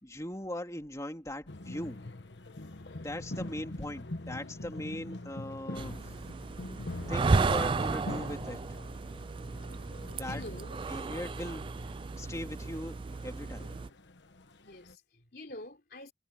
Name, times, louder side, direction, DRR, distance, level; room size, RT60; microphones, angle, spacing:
voice 1, 0.0-2.0 3.0-6.0 7.1-8.6 10.1-10.4 10.9-11.6 12.2-13.7, left 1 dB, 15° left, 3.0 m, -39 dB
sound 1, 1.5-14.9, left 2 dB, 80° left, 1.3 m, -44 dB
sound 2, 5.8-13.9, right 3 dB, 30° right, 0.3 m, -33 dB
voice 2, 10.2-10.7 14.6-16.1, left 1 dB, 55° left, 3.5 m, -47 dB
head